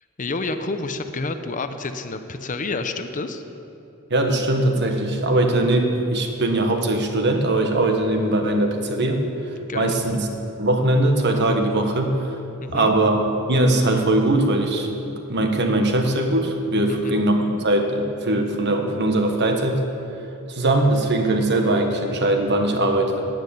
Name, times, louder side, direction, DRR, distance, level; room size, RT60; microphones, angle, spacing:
voice 1, 0.2-3.4 9.7-10.0 12.6-12.9 16.9-17.2, left 3 dB, 35° left, 8 dB, 0.7 m, -29 dB
voice 2, 4.1-9.2 9.7-10.3 10.6-12.3 12.7-19.8 20.5-23.3, right 1 dB, 50° right, 4 dB, 1.3 m, -21 dB
10.5 x 9.7 x 8.4 m, 2.8 s
head